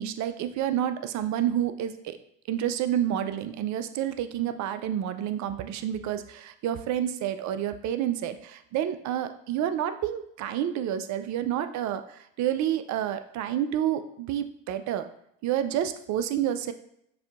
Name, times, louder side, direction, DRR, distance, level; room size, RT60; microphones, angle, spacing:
voice 1, 0.0-2.2 2.5-15.1 15.4-16.7, right 10 dB, 45° right, 10 dB, 0.5 m, -29 dB
6.5 x 2.7 x 2.5 m, 0.73 s
hypercardioid pair, 80°, 40 cm